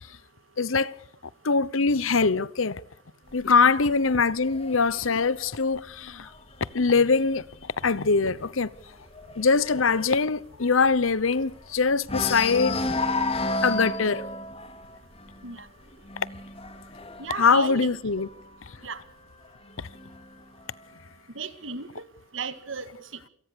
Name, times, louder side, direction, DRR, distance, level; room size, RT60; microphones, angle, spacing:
voice 1, 0.6-0.9 1.4-2.8 3.3-6.3 6.7-7.4 7.8-8.7 9.4-12.8 13.6-14.2 17.4-18.3 19.8-19.9, left 4 dB, 90° left, 0.9 m, -23 dB
sound 1, 3.3-6.9 7.3-7.6 7.9-8.0 8.4-11.7 12.0-18.6 19.4-20.4, left 2 dB, 30° left, 3.1 m, -33 dB
voice 2, 17.2-17.9 18.8-19.0 21.4-22.0 22.3-22.9, right 5 dB, 75° right, 1.9 m, -35 dB
27.5 x 18.5 x 6.9 m
head